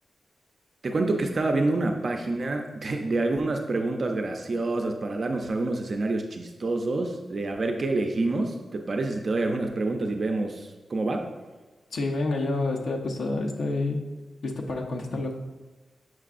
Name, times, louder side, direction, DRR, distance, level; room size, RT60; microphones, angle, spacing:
voice 1, 0.8-11.3, right 2 dB, 40° right, 3 dB, 0.4 m, -27 dB
voice 2, 11.9-14.1 14.4-15.4, left 2 dB, 75° left, 2 dB, 0.7 m, -28 dB
6.8 x 5.9 x 2.5 m, 1.3 s
wide cardioid pair, 170°, 0 cm